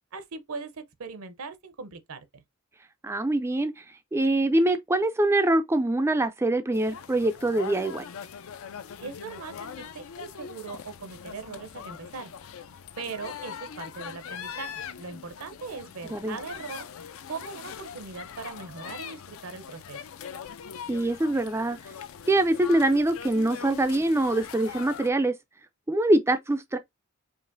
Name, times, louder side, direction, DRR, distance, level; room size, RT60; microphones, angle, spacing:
voice 1, 0.1-2.4 9.0-12.3 13.0-16.9 17.3-20.0, right 4 dB, 75° right, 0.7 m, -40 dB
voice 2, 3.0-3.8 4.1-8.1 16.1-16.4 20.9-21.8 22.3-25.3 25.9-26.8, right 1 dB, 10° right, 0.3 m, -24 dB
sound 1, 6.7-25.1, left 7 dB, 65° left, 0.4 m, -42 dB
4.8 x 2.9 x 2.6 m
head